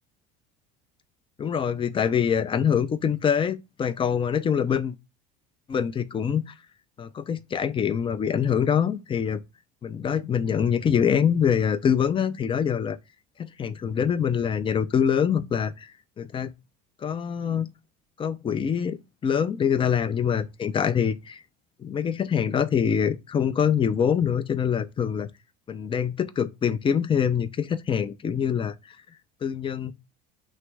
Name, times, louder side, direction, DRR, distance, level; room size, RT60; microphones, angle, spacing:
voice 1, 1.4-4.9 5.7-6.5 7.0-9.4 9.8-13.0 13.4-15.9 16.2-16.5 17.0-17.7 18.2-19.0 19.2-21.4 21.8-25.3 25.7-28.7 29.4-29.9, left 7 dB, 25° left, 0.5 m, -24 dB
3.2 x 3.1 x 4.7 m
supercardioid pair, 105°, 21 cm